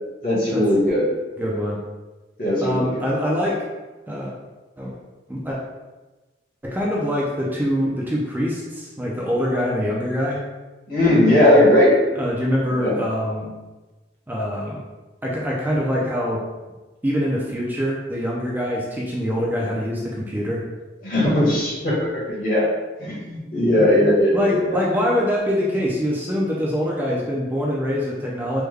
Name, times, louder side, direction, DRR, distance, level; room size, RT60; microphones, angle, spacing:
voice 1, 0.2-1.0 2.4-3.1 10.9-11.9 12.8-13.0 21.0-22.7 23.0-24.8, left 1 dB, 50° left, -6 dB, 1.3 m, -18 dB
voice 2, 1.4-1.8 2.6-3.6 4.1-4.3 4.8-4.9 5.3-5.6 6.6-10.4 12.1-13.5 14.3-14.8 15.2-16.4 17.0-20.6 23.8-28.6, equal, 10° right, -4 dB, 0.4 m, -24 dB
3.4 x 2.2 x 3.3 m, 1.2 s
head